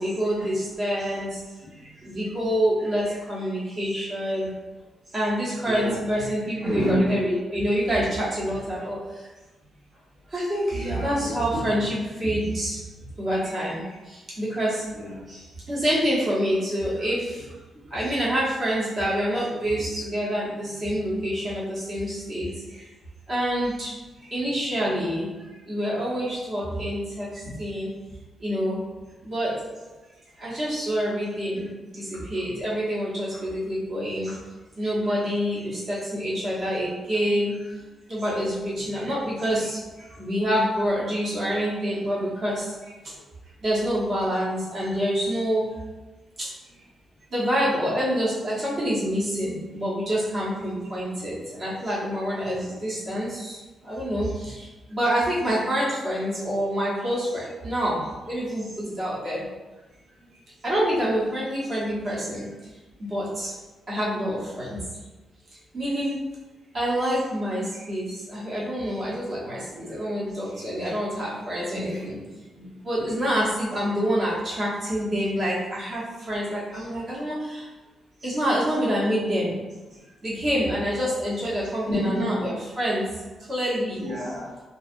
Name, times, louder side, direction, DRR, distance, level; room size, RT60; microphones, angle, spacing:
voice 1, 0.0-1.4 1.8-4.5 5.1-9.3 10.3-12.8 13.2-14.9 15.3-17.5 17.9-22.8 23.3-23.9 24.2-25.3 25.7-27.9 28.4-28.8 29.2-29.8 30.4-34.4 34.8-37.6 38.1-39.8 40.2-42.9 43.6-45.7 46.4-46.5 47.3-53.6 53.8-58.0 58.3-59.4 60.6-62.5 63.0-63.5 63.9-64.8 65.7-66.2 66.7-72.2 72.8-77.7 78.2-79.6 80.2-83.1 83.5-84.1, equal, 30° right, -7 dB, 0.9 m, -27 dB
voice 2, 5.7-6.0 6.6-7.1 10.7-11.7 14.9-15.2 33.3-33.4 34.3-34.4 38.5-38.6 43.0-43.2 71.7-72.7 73.0-73.1 76.3-76.4 81.6-82.3 84.0-84.5, equal, 60° right, -7 dB, 1.0 m, -31 dB
2.6 x 2.3 x 2.4 m, 1.2 s
wide cardioid pair, 165°, 0 cm